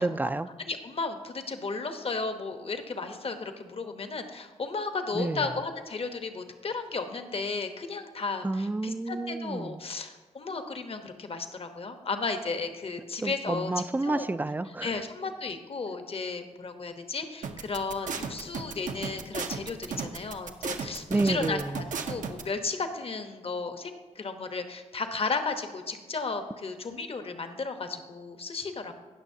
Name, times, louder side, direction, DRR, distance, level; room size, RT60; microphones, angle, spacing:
voice 1, 0.0-0.5 5.1-5.5 8.4-9.8 13.2-14.9 21.1-21.8, right 2 dB, 15° right, 13 dB, 0.4 m, -29 dB
voice 2, 0.7-13.7 14.0-14.2 14.8-28.9, left 4 dB, 45° left, 7 dB, 1.0 m, -34 dB
sound 1, 17.4-22.4, right 6 dB, 75° right, 0.8 m, -34 dB
18.5 x 6.2 x 2.8 m, 1.3 s
cardioid pair, 65°, 13 cm